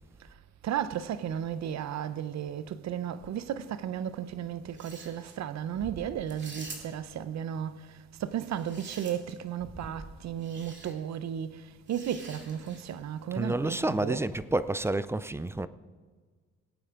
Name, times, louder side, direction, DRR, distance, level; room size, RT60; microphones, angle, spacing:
voice 1, 0.6-14.2, right 9 dB, 65° right, 0.7 m, -34 dB
sound 1, 4.6-5.4 6.3-7.1 8.3-9.5 10.4-10.9 11.9-13.0, right 3 dB, 40° right, 2.4 m, -47 dB
voice 2, 13.3-15.7, right 2 dB, 10° right, 0.4 m, -29 dB
20.0 x 8.6 x 3.8 m
cardioid pair, 90°, 30 cm